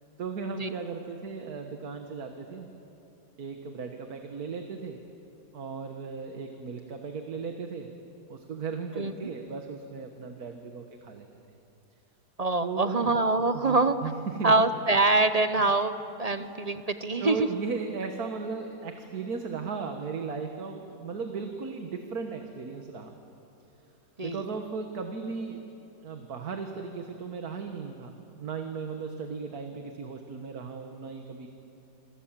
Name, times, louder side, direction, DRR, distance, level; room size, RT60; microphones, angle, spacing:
voice 1, 0.2-2.7 3.4-5.0 5.5-7.9 8.3-11.3 12.6-13.2 13.5-14.5 16.4-16.6 17.2-23.2 24.2-25.6 26.0-31.5, right 5 dB, 60° right, 5 dB, 1.9 m, -36 dB
voice 2, 12.4-14.0 14.4-15.9 16.2-17.5 24.2-24.4, right 2 dB, 40° right, 10 dB, 0.6 m, -24 dB
27.5 x 27.0 x 7.5 m, 2.9 s
omnidirectional pair, 1.8 m